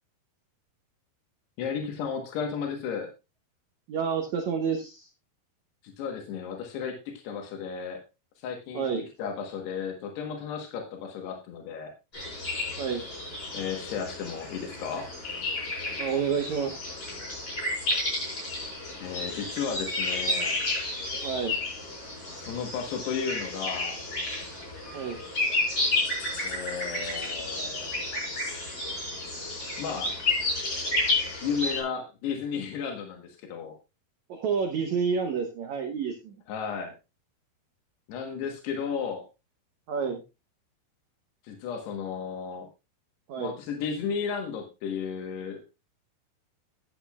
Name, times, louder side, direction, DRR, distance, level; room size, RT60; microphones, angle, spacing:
voice 1, 1.6-3.1 5.8-8.0 8.4-8.9 9.2-11.9 13.5-15.1 19.0-20.6 22.4-24.0 26.4-27.9 29.8-30.2 31.4-33.8 36.5-36.9 38.1-39.3 41.4-42.7 43.4-45.6, left 6 dB, 90° left, 3 dB, 3.5 m, -34 dB
voice 2, 3.9-5.1 8.7-9.1 12.8-13.0 16.0-17.1 21.2-21.6 24.9-25.2 34.3-36.4 39.9-40.2 43.3-43.5, right 6 dB, 75° right, 4 dB, 1.7 m, -29 dB
sound 1, 12.1-31.8, left 2 dB, 30° left, 5.2 m, -31 dB
14.5 x 8.5 x 2.4 m, 0.26 s
omnidirectional pair, 4.6 m